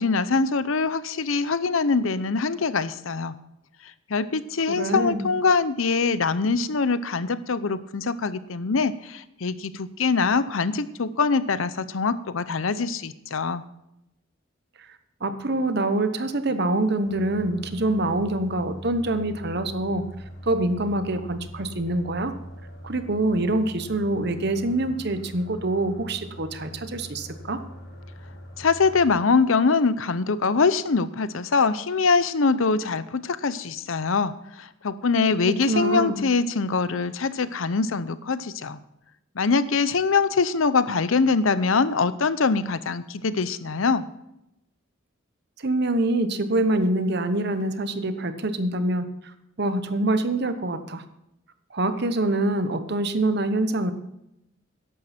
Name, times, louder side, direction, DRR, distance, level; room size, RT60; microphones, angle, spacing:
voice 1, 0.0-3.3 4.1-13.6 28.6-34.3 34.6-38.8 39.4-44.0, left 4 dB, 75° left, 14 dB, 0.7 m, -23 dB
voice 2, 4.7-5.3 15.2-20.0 20.4-22.3 22.8-27.6 35.2-36.2 45.6-49.1 49.6-51.0 51.7-53.9, right 2 dB, 55° right, 10 dB, 1.0 m, -25 dB
sound 1, 17.0-29.1, equal, 50° left, 5.3 m, -42 dB
14.0 x 11.0 x 4.4 m, 0.84 s
head